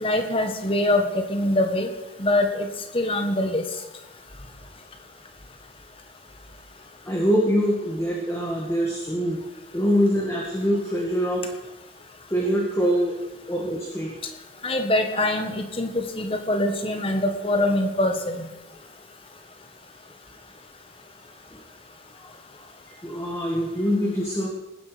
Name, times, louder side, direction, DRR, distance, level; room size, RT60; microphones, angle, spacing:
voice 1, 0.0-1.9 2.2-2.7 2.9-3.6 14.6-18.4, left 1 dB, 30° left, 6 dB, 1.6 m, -23 dB
voice 2, 7.0-9.4 9.7-11.5 12.3-13.2 13.5-14.1 21.5-21.6 22.1-22.3 23.0-24.5, equal, 15° left, -2 dB, 2.0 m, -24 dB
18.5 x 10.5 x 5.2 m, 1.1 s
head